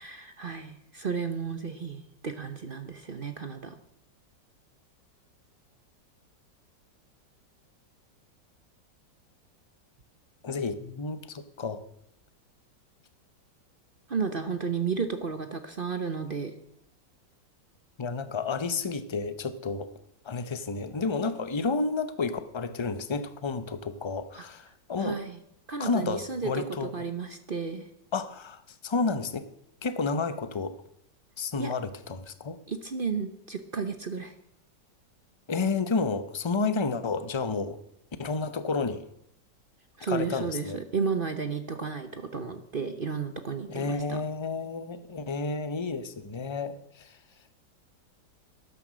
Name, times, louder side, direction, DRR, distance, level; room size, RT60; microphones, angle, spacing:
voice 1, 0.0-3.7 14.1-16.5 24.3-24.5 25.0-25.4 25.7-27.9 31.6-31.7 32.7-34.3 40.0-44.2, right 5 dB, 40° right, 9 dB, 0.8 m, -33 dB
voice 2, 10.4-11.8 18.0-19.9 20.2-25.2 25.8-26.9 28.1-29.4 29.8-30.7 31.4-32.6 35.5-37.8 38.2-39.0 40.1-40.8 43.7-47.2, left 4 dB, 40° left, 11 dB, 0.4 m, -31 dB
13.0 x 11.0 x 6.2 m, 0.77 s
omnidirectional pair, 1.9 m